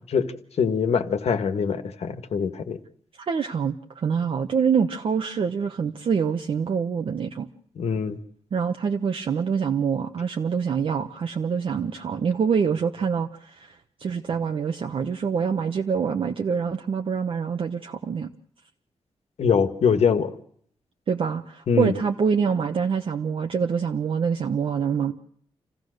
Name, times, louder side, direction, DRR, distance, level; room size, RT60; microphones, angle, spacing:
voice 1, 0.0-2.8 7.8-8.2 19.4-20.3 21.7-21.9, left 6 dB, 80° left, 9 dB, 1.6 m, -23 dB
voice 2, 3.2-7.5 8.5-18.3 21.1-25.1, right 6 dB, 55° right, 4 dB, 1.0 m, -25 dB
27.5 x 15.5 x 6.5 m, 0.64 s
wide cardioid pair, 150°, 11 cm